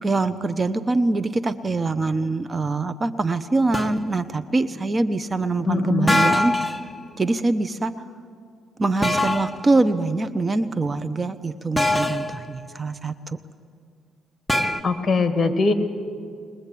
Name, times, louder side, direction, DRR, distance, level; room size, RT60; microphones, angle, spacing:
voice 1, 0.0-6.6 7.2-7.9 8.8-13.4, right 3 dB, 25° right, 12 dB, 0.8 m, -24 dB
sound 1, 3.7-4.0 6.1-6.8 9.0-9.6 11.8-12.4 14.5-14.8, left 1 dB, ahead, 1.1 m, -22 dB
voice 2, 5.6-6.2 14.8-15.7, left 4 dB, 35° left, 7 dB, 2.0 m, -21 dB
22.0 x 21.0 x 8.4 m, 2.2 s
cardioid pair, 90°, 0 cm